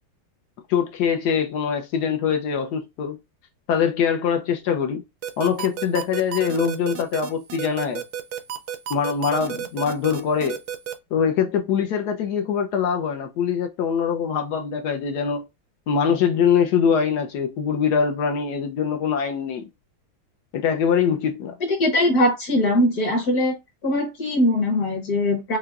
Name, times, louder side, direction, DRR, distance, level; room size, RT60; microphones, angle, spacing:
voice 1, 0.7-3.2 3.7-5.0 5.4-8.0 8.9-10.6 11.1-15.4 15.9-19.7 20.5-21.6, left 7 dB, 70° left, 1.0 m, -23 dB
sound 1, 5.2-10.9, right 10 dB, 70° right, 0.9 m, -31 dB
voice 2, 21.7-23.6 23.8-25.6, left 1 dB, 50° left, 1.6 m, -21 dB
5.6 x 2.2 x 2.3 m
omnidirectional pair, 2.2 m